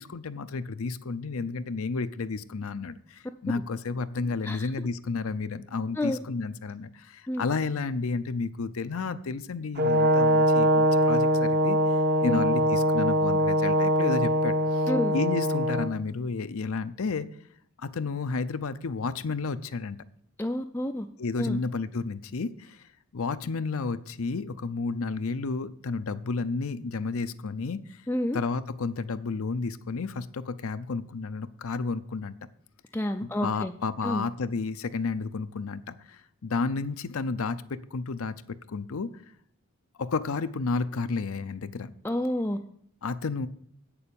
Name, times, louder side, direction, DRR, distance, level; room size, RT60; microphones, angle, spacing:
voice 1, 0.0-11.8 12.2-17.3 17.8-20.0 21.2-22.8 23.1-28.0 28.3-32.3 33.2-39.1 40.0-41.9 43.0-43.5, left 4 dB, 70° left, 11 dB, 0.6 m, -31 dB
Brass instrument, 9.8-15.9, equal, 45° right, 1.0 m, -23 dB
voice 2, 20.4-21.1 21.4-21.6 28.1-28.4 32.9-33.7 34.0-34.2 42.0-42.6, left 1 dB, 10° left, 5 dB, 0.4 m, -29 dB
8.6 x 6.9 x 6.9 m, 0.65 s
head